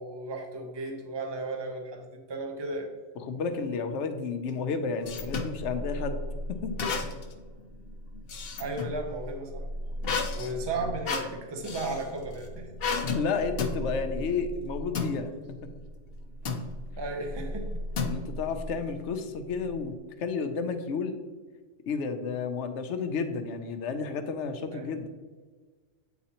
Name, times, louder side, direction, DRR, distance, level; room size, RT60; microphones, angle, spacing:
voice 1, 0.0-2.9 8.6-9.7 10.3-12.7 17.0-17.9 24.7-24.9, right 2 dB, 25° right, 2 dB, 0.7 m, -35 dB
voice 2, 3.2-6.2 6.5-6.7 13.2-15.3 18.0-21.2 21.9-25.1, left 5 dB, 85° left, 7 dB, 1.0 m, -31 dB
sound 1, 4.5-5.6 6.8-7.4 7.7-9.0 10.0-12.0 12.8-13.2 13.6-13.8 14.9-15.2 16.5-16.7 18.0-18.5, left 5 dB, 60° left, 0.9 m, -32 dB
sound 2, 5.0-20.0, equal, 75° right, 1.0 m, -39 dB
8.3 x 4.1 x 2.9 m, 1.4 s
omnidirectional pair, 1.2 m